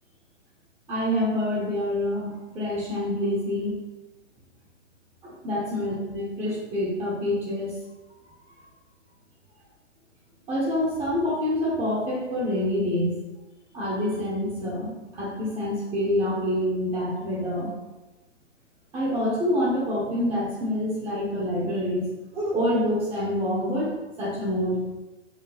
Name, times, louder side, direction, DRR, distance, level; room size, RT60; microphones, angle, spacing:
voice 1, 0.9-3.8 5.2-7.7 10.5-13.2 13.7-17.7 18.9-24.8, left 1 dB, 15° right, -5 dB, 1.5 m, -27 dB
6.6 x 5.5 x 4.2 m, 1.1 s
figure-of-eight pair, 125°, 38 cm